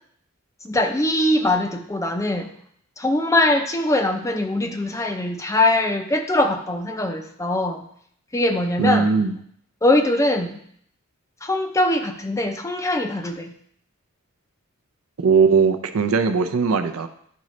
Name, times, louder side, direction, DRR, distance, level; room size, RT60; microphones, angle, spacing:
voice 1, 0.6-2.5 3.0-7.9 8.3-9.2 9.8-10.6 11.4-13.5, left 1 dB, 15° left, 5 dB, 0.5 m, -22 dB
voice 2, 8.8-9.3 15.2-17.1, right 5 dB, 70° right, 8 dB, 0.5 m, -19 dB
10.5 x 3.8 x 3.1 m, 0.64 s
head